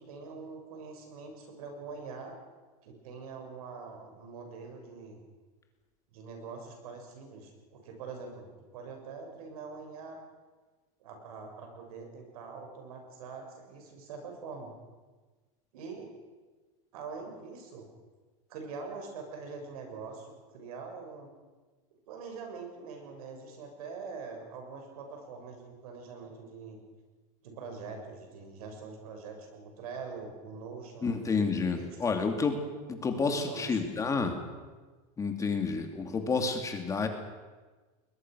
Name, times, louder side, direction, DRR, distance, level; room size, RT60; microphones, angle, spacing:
voice 1, 0.1-2.3 2.8-5.2 6.1-10.2 11.0-14.7 15.7-16.1 16.9-17.9 18.5-21.3 22.1-26.8 27.4-31.1 31.7-32.1 33.1-33.8, right 4 dB, 85° right, 3 dB, 6.7 m, -44 dB
voice 2, 31.0-32.6 32.9-34.4 35.2-37.1, left 4 dB, 15° left, 5 dB, 2.7 m, -29 dB
21.5 x 21.0 x 6.4 m, 1.3 s
supercardioid pair, 145°, 18 cm